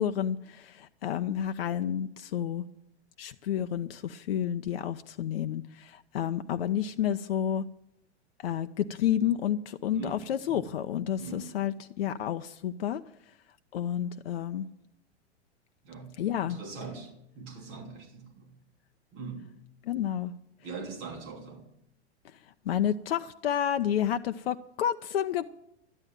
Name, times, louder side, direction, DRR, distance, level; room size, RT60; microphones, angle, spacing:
voice 1, 0.0-2.7 3.2-7.6 8.4-13.0 13.7-14.7 16.2-16.6 19.9-20.3 22.7-25.5, left 10 dB, 55° left, 9 dB, 0.6 m, -30 dB
voice 2, 9.9-10.6 11.2-11.5 15.8-16.1 16.4-18.5 19.1-19.5 20.6-21.6, right 4 dB, 40° right, 3 dB, 2.8 m, -42 dB
13.0 x 10.5 x 7.5 m, 0.78 s
figure-of-eight pair, 95°, 34 cm